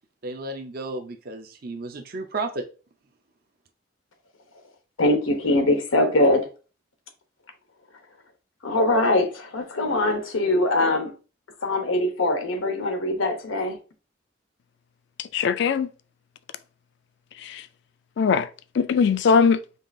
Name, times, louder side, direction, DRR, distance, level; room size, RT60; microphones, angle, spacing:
voice 1, 0.2-2.6, right 2 dB, 50° right, 0.5 m, -33 dB
voice 2, 5.0-6.5 8.6-11.1 11.6-13.8, left 2 dB, 90° left, 0.8 m, -22 dB
voice 3, 15.2-15.9 17.4-17.7 18.2-18.5 18.7-19.6, left 6 dB, 60° left, 0.3 m, -20 dB
5.4 x 2.4 x 2.5 m
head